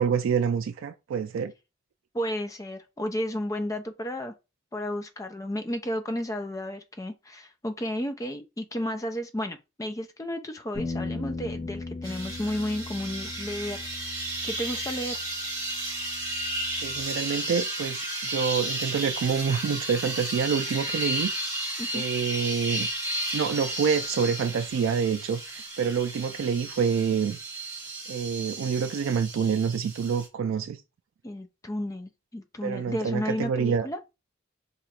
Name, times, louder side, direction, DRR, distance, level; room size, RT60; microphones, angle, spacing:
voice 1, 0.0-1.5 16.8-21.3 21.9-22.9 23.3-27.4 28.1-30.8 32.6-33.9, right 6 dB, 85° right, 0.3 m, -27 dB
voice 2, 2.1-4.3 4.7-15.2 21.8-22.0 31.2-34.0, equal, 15° left, 0.4 m, -33 dB
sound 1, 10.7-17.0, left 3 dB, 35° left, 1.1 m, -38 dB
sound 2, 12.0-30.3, right 1 dB, 20° right, 1.3 m, -33 dB
2.9 x 2.4 x 4.2 m
head